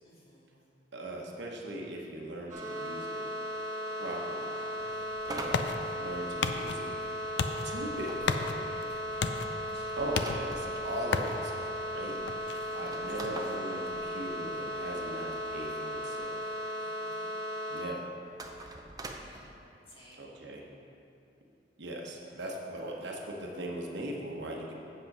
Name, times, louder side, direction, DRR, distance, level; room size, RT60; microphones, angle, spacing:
voice 1, 0.0-0.5 4.5-5.1 9.7-10.0 12.8-12.9 16.8-17.3 19.2-19.5 19.9-20.3 22.4-22.5, equal, 30° left, -6 dB, 2.0 m, -57 dB
voice 2, 0.9-3.2 4.0-4.5 5.2-5.6 6.0-6.9 7.6-8.5 10.0-11.5 11.9-12.2 12.7-16.4 17.7-18.1 20.2-20.6 21.8-24.7, right 1 dB, 65° right, 0 dB, 1.1 m, -39 dB
sound 1, 2.5-17.8, equal, 45° right, 1.6 m, -36 dB
sound 2, 4.8-16.3, left 4 dB, 65° left, 0.4 m, -37 dB
sound 3, 5.2-6.8 8.1-10.9 11.6-11.7 11.9-12.0 12.7-14.8 18.3-19.4, right 2 dB, 20° right, 0.6 m, -44 dB
7.8 x 7.5 x 5.4 m, 2.7 s
head